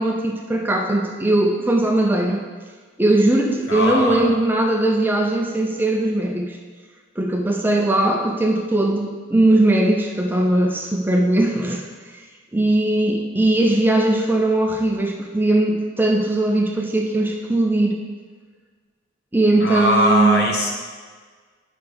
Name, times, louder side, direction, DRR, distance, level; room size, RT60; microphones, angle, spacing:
voice 1, 0.0-2.4 3.0-6.6 7.2-11.8 12.5-18.0 19.3-20.5, right 1 dB, 10° right, 1 dB, 0.5 m, -19 dB
voice 2, 3.7-4.2 19.6-20.7, left 1 dB, 55° left, 0 dB, 1.2 m, -20 dB
9.7 x 5.7 x 3.5 m, 1.5 s
head